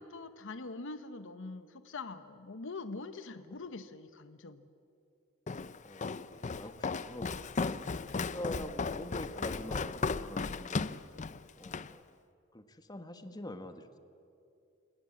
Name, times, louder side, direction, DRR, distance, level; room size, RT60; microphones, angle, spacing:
voice 1, 0.0-4.7, left 3 dB, 65° left, 11 dB, 1.0 m, -44 dB
Walk footsteps, 5.5-11.9, left 4 dB, 35° left, 0.6 m, -36 dB
voice 2, 5.8-10.8 11.6-12.0 12.5-14.0, left 1 dB, 20° left, 8 dB, 1.4 m, -45 dB
28.5 x 17.5 x 8.7 m, 2.6 s
head